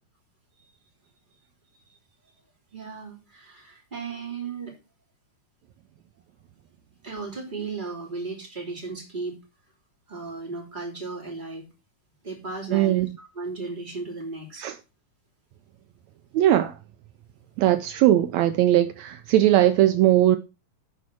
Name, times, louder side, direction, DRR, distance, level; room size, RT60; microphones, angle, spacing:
voice 1, 2.7-4.7 7.0-9.4 10.1-11.7 12.2-14.7, right 4 dB, 15° right, 3.0 m, -35 dB
voice 2, 12.7-13.1 14.6-14.8 16.3-16.7 17.6-20.4, right 13 dB, 80° right, 1.6 m, -19 dB
11.5 x 4.6 x 6.1 m
omnidirectional pair, 3.9 m